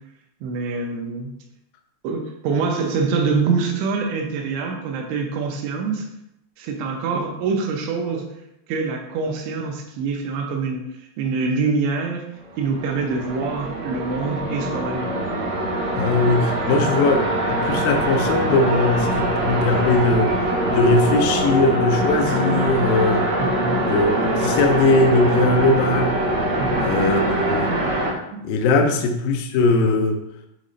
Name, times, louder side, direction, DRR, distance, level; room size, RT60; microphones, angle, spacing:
voice 1, 0.4-1.3 2.0-6.1 6.6-8.3 8.7-10.8 11.2-12.2 12.6-15.1 23.4-23.8 26.6-26.9 28.3-28.4 28.8-28.9, right 4 dB, 90° right, 2 dB, 3.1 m, -25 dB
sound 1, 12.5-28.1, right 1 dB, 70° right, 1.6 m, -23 dB
voice 2, 16.0-20.4 20.7-23.3 23.8-26.2 26.8-27.7 28.4-30.2, left 2 dB, 90° left, 4 dB, 2.0 m, -20 dB
8.0 x 3.1 x 3.8 m, 0.82 s
omnidirectional pair, 5.0 m